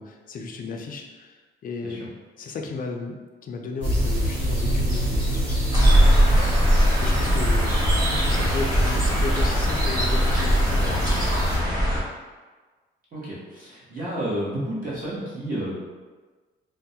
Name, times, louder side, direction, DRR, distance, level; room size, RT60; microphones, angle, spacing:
voice 1, 0.0-1.4 1.6-2.0 2.4-3.2 3.4-5.6 6.4-6.7 7.0-7.7 8.1-11.7, left 3 dB, 45° left, 3 dB, 0.4 m, -34 dB
sound 1, 3.8-11.6, equal, 80° right, 1.2 m, -25 dB
sound 2, 5.7-12.0, equal, 20° right, 1.0 m, -21 dB
voice 2, 13.1-15.7, right 1 dB, 45° right, -8 dB, 0.8 m, -31 dB
2.2 x 2.1 x 2.7 m, 1.3 s
cardioid pair, 90°, 20 cm